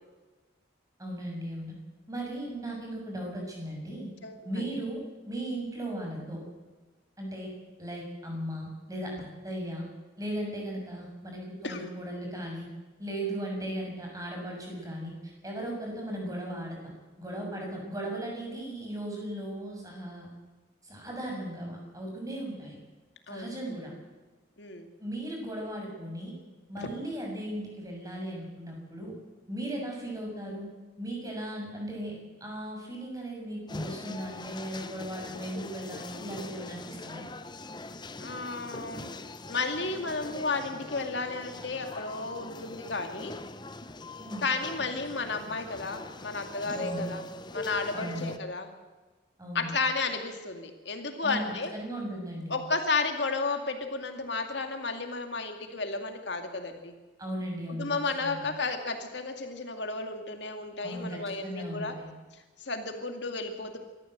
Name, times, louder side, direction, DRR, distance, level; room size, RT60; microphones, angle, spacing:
voice 1, 1.0-1.7 2.1-4.1 4.4-5.0 5.3-6.4 7.2-7.5 7.8-9.1 9.4-9.8 10.2-12.7 13.0-16.9 17.2-20.3 20.8-22.8 23.3-23.9 25.0-26.3 26.7-29.1 29.5-30.7 31.0-32.1 32.4-37.2 44.2-44.5 46.7-47.1 47.9-48.3 49.4-49.7 51.2-51.4 51.7-52.6 57.2-58.5 60.8-62.1, right 1 dB, 20° right, 0 dB, 6.8 m, -37 dB
voice 2, 23.3-23.7 24.6-24.9 26.8-26.9 38.2-39.1 39.5-43.3 44.4-47.3 47.5-48.7 49.5-51.7 52.5-56.9 57.8-61.9 62.6-63.8, left 3 dB, 65° left, 5 dB, 2.2 m, -33 dB
sound 1, 33.7-48.4, left 2 dB, 25° left, 0.8 m, -42 dB
24.5 x 14.0 x 8.0 m, 1.2 s
head